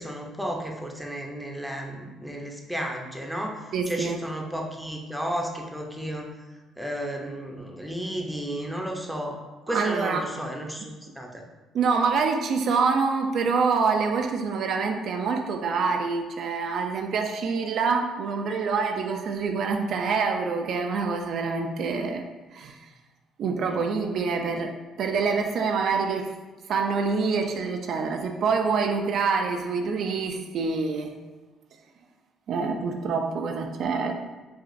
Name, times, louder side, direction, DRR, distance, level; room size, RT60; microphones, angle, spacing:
voice 1, 0.0-6.3 6.8-9.4 9.7-11.4 23.7-23.8, equal, ahead, 1 dB, 0.6 m, -33 dB
voice 2, 3.7-4.2 9.7-10.2 11.7-22.3 22.5-22.8 23.4-26.3 26.7-31.1 32.5-34.2, right 5 dB, 60° right, 4 dB, 0.4 m, -26 dB
5.8 x 2.4 x 2.5 m, 1.2 s
cardioid pair, 110°, 0 cm